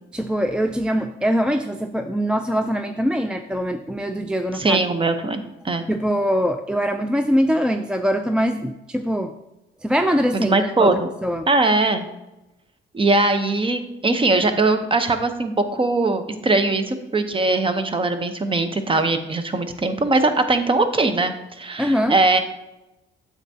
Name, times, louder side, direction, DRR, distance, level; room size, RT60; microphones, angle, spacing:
voice 1, 0.1-4.8 5.9-9.3 9.8-11.5 21.8-22.2, equal, 5° right, 7 dB, 0.4 m, -23 dB
voice 2, 4.5-5.8 10.3-11.1 11.5-12.0 12.9-22.4, right 2 dB, 25° right, 9 dB, 0.8 m, -20 dB
9.0 x 7.3 x 2.8 m, 0.97 s
cardioid pair, 90°, 20 cm